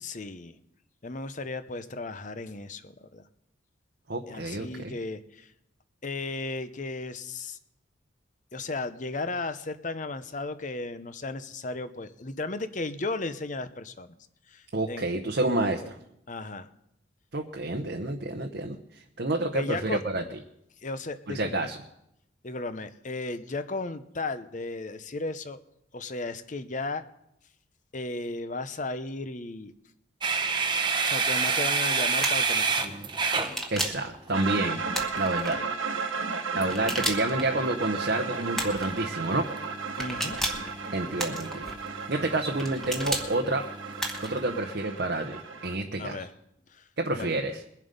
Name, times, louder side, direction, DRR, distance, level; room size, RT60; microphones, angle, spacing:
voice 1, 0.0-0.5 1.0-3.2 4.3-5.5 6.0-7.6 8.5-14.2 14.5-15.1 16.3-16.7 19.5-20.0 20.8-21.6 22.4-25.6 25.9-27.0 27.9-29.7 31.1-32.9 40.0-40.4 46.0-46.3 46.7-46.8 47.1-47.4, left 3 dB, 40° left, 12 dB, 0.7 m, -35 dB
voice 2, 4.1-4.9 14.7-15.8 17.3-20.2 21.3-21.8 33.7-34.9 35.2-35.6 36.5-39.5 40.9-41.7 42.1-43.6 44.2-46.3 47.0-47.6, right 2 dB, 55° right, 2 dB, 0.9 m, -29 dB
sound 1, 30.2-34.3 36.6-44.6, right 4 dB, 25° right, 0.9 m, -31 dB
sound 2, 32.2-32.5 33.4-34.1 34.9-35.5 36.7-37.4 38.5-38.9 40.0-40.7 41.2-41.7 42.6-43.3 44.0-44.4, right 1 dB, ahead, 1.3 m, -32 dB
sound 3, 34.3-45.7, right 5 dB, 85° right, 1.5 m, -34 dB
22.0 x 7.5 x 5.3 m, 0.80 s
head